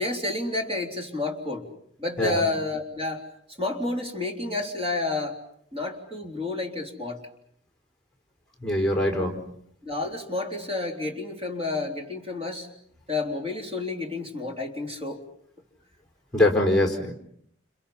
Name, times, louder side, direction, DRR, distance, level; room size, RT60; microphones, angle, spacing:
voice 1, 0.0-1.7 2.0-5.4 5.7-7.2 9.8-12.7 13.1-15.2, left 2 dB, 30° right, 2 dB, 3.6 m, -30 dB
voice 2, 8.6-9.3 16.3-17.1, left 1 dB, 5° left, 3 dB, 4.3 m, -22 dB
30.0 x 29.5 x 5.7 m, 0.68 s
head